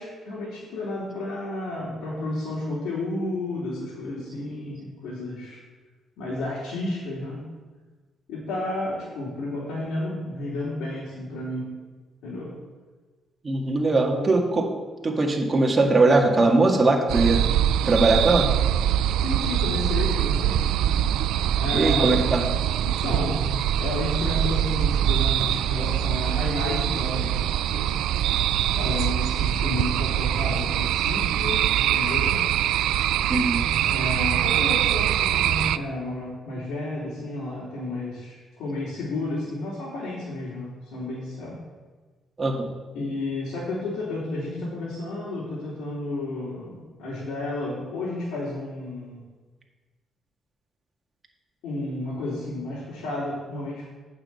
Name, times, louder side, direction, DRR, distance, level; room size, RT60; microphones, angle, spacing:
voice 1, 0.0-5.6 6.2-7.4 8.3-11.8 12.2-12.6 14.1-14.3 19.2-20.6 21.6-22.3 22.8-27.9 28.7-32.4 33.8-41.6 42.9-49.2 51.6-53.9, left 2 dB, 85° left, -7 dB, 3.5 m, -32 dB
voice 2, 13.4-14.7 15.0-17.4 17.9-18.5 21.7-22.5 33.3-33.6 42.4-42.7, right 2 dB, 30° right, 1 dB, 1.9 m, -20 dB
sound 1, 17.1-35.8, right 11 dB, 85° right, 0.3 m, -23 dB
8.9 x 6.3 x 7.7 m, 1.3 s
cardioid pair, 90°, 0 cm